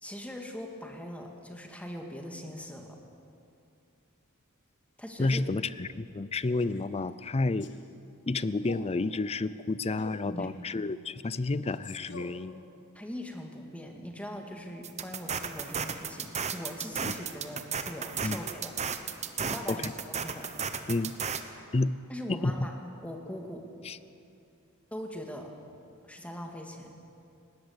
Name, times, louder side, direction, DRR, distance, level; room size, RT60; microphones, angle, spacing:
voice 1, 0.0-3.0 5.0-5.4 10.3-10.5 12.9-18.7 19.4-19.9 20.2-20.5 22.1-22.7 23.0-23.7 24.9-25.5 26.0-26.9, equal, 5° left, 2 dB, 2.0 m, -41 dB
voice 2, 5.2-7.7 8.3-12.6 17.0-17.1 18.2-18.4 19.7-19.9 20.9-21.1 21.7-21.9 22.3-22.7 23.8-24.0, left 3 dB, 30° left, 16 dB, 0.5 m, -30 dB
Male speech man speaking, 6.5-6.9 7.6-7.9 8.5-9.0 10.0-10.3 11.6-12.4, left 2 dB, 55° left, 1.6 m, -46 dB
sound 1, 14.8-21.4, right 6 dB, 30° right, 1.0 m, -34 dB
20.0 x 17.5 x 8.1 m, 2.6 s
head